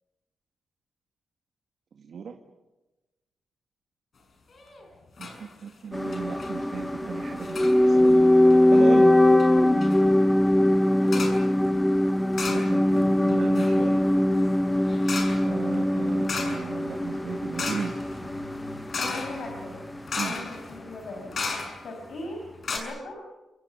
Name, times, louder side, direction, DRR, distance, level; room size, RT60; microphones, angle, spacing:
voice 1, 2.0-2.4 5.2-8.2 8.7-9.1 12.5-14.0 15.4-18.3 20.2-20.4, right 6 dB, 70° right, 4 dB, 2.0 m, -35 dB
sound 1, 4.5-4.9 5.2-5.4 5.7-5.8 6.1-6.5 7.4-7.8 8.5-8.9 9.4-9.5 9.8-10.0 11.1-11.5 12.3-13.0 13.3-22.0 22.4-22.5 22.6-22.8, left 4 dB, 55° left, 6.7 m, -35 dB
sound 2, 5.9-20.0 20.2-20.3, left 1 dB, 10° left, 1.0 m, -22 dB
voice 2, 11.0-11.3 19.0-19.9 20.2-21.4 21.8-23.2, left 2 dB, 75° left, 2 dB, 6.0 m, -38 dB
27.5 x 23.5 x 7.0 m, 1.1 s
cardioid pair, 90°, 0 cm